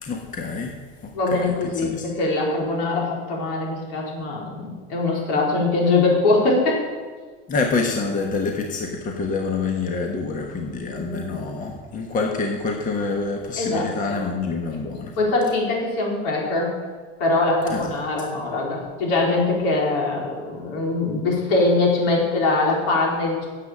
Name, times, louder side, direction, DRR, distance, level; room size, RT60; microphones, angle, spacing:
voice 1, 0.0-0.7 1.0-1.5 1.8-2.0 7.5-15.1 17.7-17.9, left 4 dB, 25° left, 2 dB, 1.3 m, -27 dB
voice 2, 1.1-6.8 10.9-11.4 13.5-14.2 15.2-16.7 17.2-23.5, left 2 dB, 75° left, -2 dB, 4.5 m, -22 dB
10.5 x 7.7 x 8.6 m, 1.5 s
supercardioid pair, 135°, 30 cm